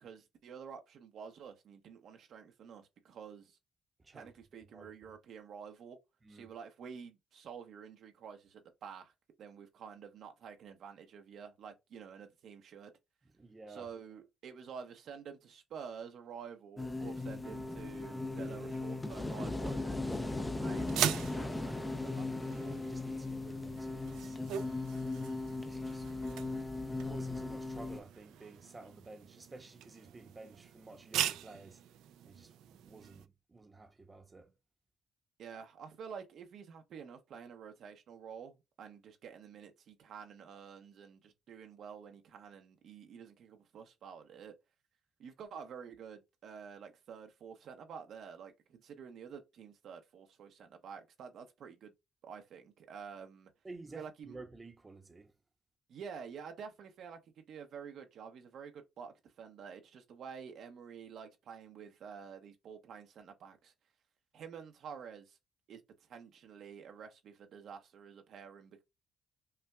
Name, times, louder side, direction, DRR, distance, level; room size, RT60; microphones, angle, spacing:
voice 1, 0.0-3.6 4.1-6.0 6.3-9.1 9.4-12.9 13.7-22.3 35.4-44.5 45.2-51.9 52.2-53.5 53.9-54.4 55.9-57.2 57.5-63.7 64.3-65.4 65.7-65.8 66.1-68.8, right 7 dB, 70° right, 0.8 m, -49 dB
voice 2, 4.0-4.3 4.7-4.9 6.2-6.5 13.4-13.9 22.5-24.8 25.5-26.1 26.8-31.8 32.2-34.5 53.6-55.3, right 3 dB, 25° right, 0.8 m, -52 dB
sound 1, 16.8-28.0, left 2 dB, 15° left, 0.5 m, -38 dB
sound 2, 20.8-33.3, right 10 dB, 90° right, 0.3 m, -41 dB
5.6 x 2.3 x 2.3 m
cardioid pair, 90°, 0 cm